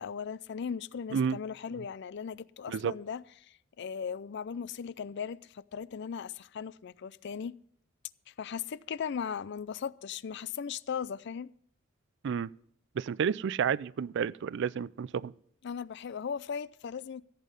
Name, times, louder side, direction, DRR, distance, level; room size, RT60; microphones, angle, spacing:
voice 1, 0.0-3.2 3.8-7.6 8.3-11.5 15.6-17.2, left 7 dB, 60° left, 0.4 m, -38 dB
voice 2, 13.0-15.3, right 7 dB, 65° right, 0.4 m, -30 dB
14.5 x 8.3 x 5.3 m
head